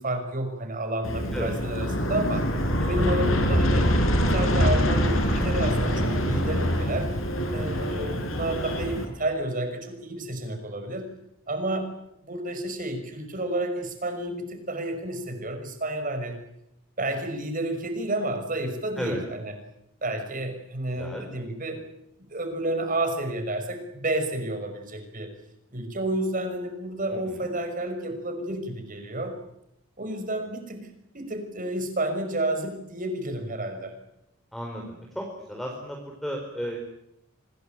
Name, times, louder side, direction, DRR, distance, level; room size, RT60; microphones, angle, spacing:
voice 1, 0.0-2.4 2.8-3.9 4.2-7.1 7.5-11.1 11.5-11.9 12.2-16.4 17.0-19.6 20.0-21.8 22.3-25.3 25.7-29.3 30.0-30.9 31.1-33.9, right 1 dB, 40° right, 7 dB, 5.9 m, -30 dB
Aircraft, 1.0-9.0, equal, 70° left, 6.0 m, -24 dB
voice 2, 7.7-8.2 19.0-19.2 21.0-21.3 27.3-27.5 34.5-34.8 35.1-36.8, equal, ahead, 1 dB, 4.7 m, -34 dB
26.5 x 21.0 x 9.2 m, 0.80 s
head